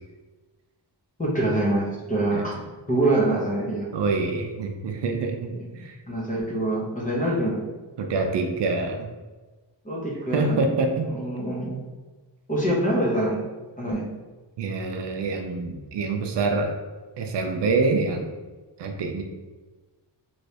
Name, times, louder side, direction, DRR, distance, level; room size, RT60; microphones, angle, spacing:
voice 1, 1.2-2.6 2.9-3.9 5.5-5.8 6.1-7.7 9.8-10.6 11.0-11.8 12.5-13.4 13.8-14.1, right 1 dB, 20° left, -4 dB, 0.8 m, -25 dB
voice 2, 3.9-6.0 8.0-9.1 10.3-11.1 14.6-16.8 17.2-18.3 18.8-19.2, right 3 dB, 75° right, 4 dB, 0.6 m, -26 dB
3.2 x 3.1 x 2.7 m, 1.3 s
wide cardioid pair, 125°, 43 cm